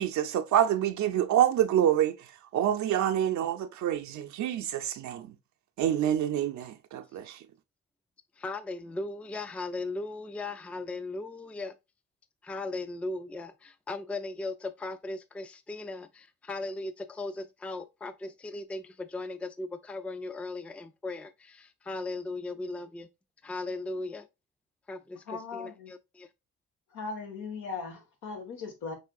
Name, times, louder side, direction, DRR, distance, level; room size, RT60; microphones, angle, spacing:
voice 1, 0.0-2.2 2.5-5.3 5.8-7.4, right 10 dB, 70° right, 0.5 m, -27 dB
voice 2, 8.4-11.7 12.4-23.1 23.4-24.3 24.9-26.3, left 2 dB, 5° left, 0.3 m, -37 dB
voice 3, 25.3-25.9 26.9-28.9, left 4 dB, 90° left, 1.5 m, -38 dB
5.4 x 3.3 x 2.3 m
cardioid pair, 90°, 30 cm